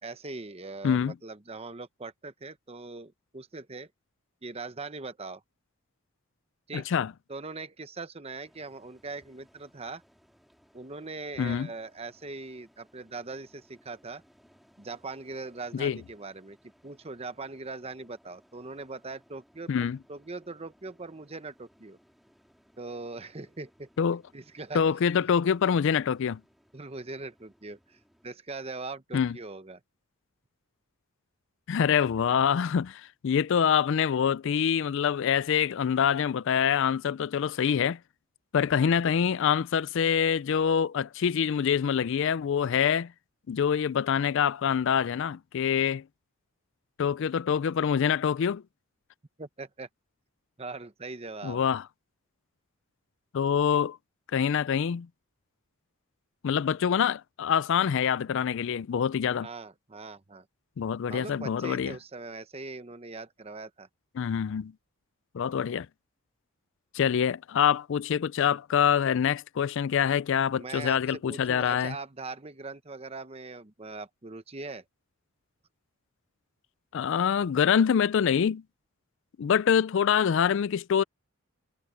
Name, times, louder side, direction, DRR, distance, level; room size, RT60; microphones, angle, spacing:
voice 1, 0.0-3.9 4.4-5.4 6.7-6.8 7.3-10.0 10.7-14.2 14.8-16.6 16.8-22.0 22.8-23.9 24.3-24.8 26.7-29.8 49.4-49.9 50.6-51.6 59.4-60.5 61.1-63.9 70.5-74.8, right 3 dB, 30° right, 1.0 m, -41 dB
voice 2, 0.8-1.1 6.7-7.1 11.4-11.7 15.7-16.0 19.7-20.0 24.0-24.2 24.7-26.4 29.1-29.4 31.7-38.0 38.5-43.1 43.5-46.0 47.0-48.6 51.4-51.8 53.3-54.0 54.3-55.1 56.4-59.5 60.8-62.0 64.2-64.7 65.3-65.9 66.9-72.0 76.9-78.6 79.4-81.0, left 7 dB, 60° left, 0.4 m, -25 dB
sound 1, 8.4-28.4, equal, ahead, 3.0 m, -64 dB
head